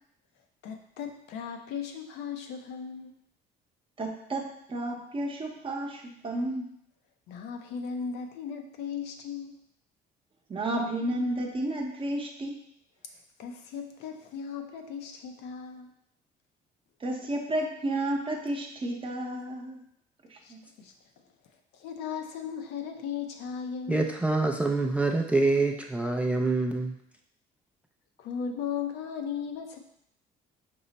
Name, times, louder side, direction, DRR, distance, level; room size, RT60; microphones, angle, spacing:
voice 1, 0.6-3.2 7.3-9.6 13.4-15.9 20.4-20.9 21.7-24.1 28.2-29.8, left 7 dB, 85° left, 4 dB, 0.6 m, -37 dB
voice 2, 4.0-6.7 10.5-12.6 17.0-19.8 20.3-20.6, right 1 dB, 30° right, 1 dB, 0.8 m, -32 dB
voice 3, 23.9-26.9, right 3 dB, 10° right, 2 dB, 0.3 m, -26 dB
5.3 x 2.1 x 4.0 m, 0.73 s
cardioid pair, 110°, 17 cm